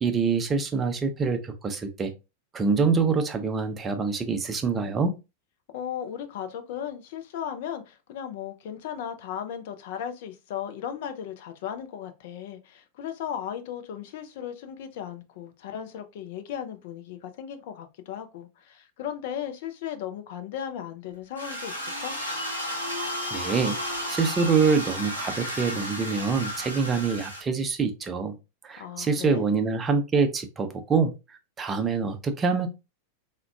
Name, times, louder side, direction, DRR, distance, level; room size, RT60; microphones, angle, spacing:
voice 1, 0.0-2.1 2.5-5.1 23.3-23.8 24.1-28.4 28.6-31.1 31.6-32.7, right 5 dB, 20° right, 0.5 m, -25 dB
voice 2, 5.7-22.2 28.8-29.4, left 9 dB, 50° left, 0.4 m, -36 dB
sound 1, 21.4-27.4, equal, 80° left, 0.8 m, -33 dB
3.4 x 2.2 x 2.3 m
figure-of-eight pair, 90°, 0 cm